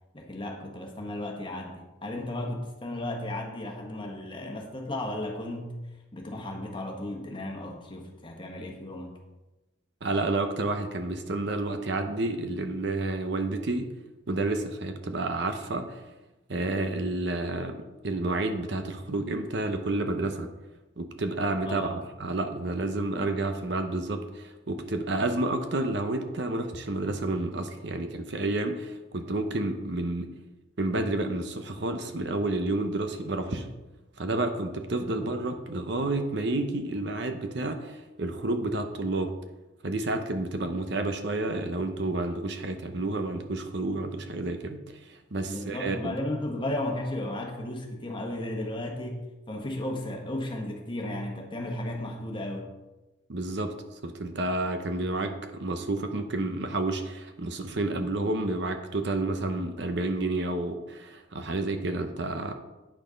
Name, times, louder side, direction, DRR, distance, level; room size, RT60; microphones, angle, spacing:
voice 1, 0.1-5.7 6.1-9.1 21.6-22.0 35.1-35.2 45.5-52.7, left 1 dB, 25° left, 1 dB, 1.3 m, -34 dB
voice 2, 10.0-13.9 14.3-16.0 16.5-17.8 18.0-20.5 21.0-30.3 30.8-33.7 34.2-39.3 39.8-46.2 53.3-53.7 54.0-62.5, right 2 dB, 60° right, 7 dB, 0.8 m, -30 dB
8.9 x 6.2 x 5.2 m, 1.1 s
head